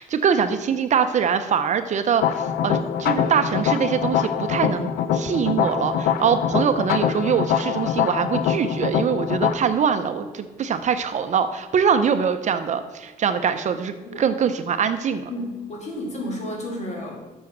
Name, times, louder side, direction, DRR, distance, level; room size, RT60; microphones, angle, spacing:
voice 1, 0.0-15.3, right 7 dB, 50° right, 9 dB, 0.6 m, -23 dB
sound 1, 2.2-9.5, left 8 dB, 85° left, 0.6 m, -24 dB
voice 2, 15.3-17.2, left 1 dB, 45° left, -2 dB, 2.5 m, -31 dB
7.6 x 6.4 x 5.9 m, 1.3 s
cardioid pair, 95°, 15 cm